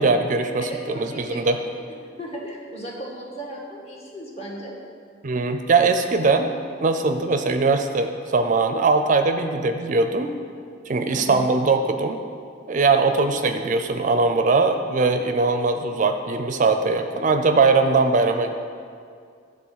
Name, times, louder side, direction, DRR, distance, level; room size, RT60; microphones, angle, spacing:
voice 1, 0.0-1.6 5.2-6.5 6.8-10.3 10.9-12.2 12.7-18.5, right 3 dB, 45° right, 7 dB, 0.5 m, -21 dB
voice 2, 0.6-4.7 11.1-11.4, right 1 dB, 35° left, -3 dB, 1.5 m, -36 dB
10.0 x 3.8 x 7.3 m, 2.2 s
head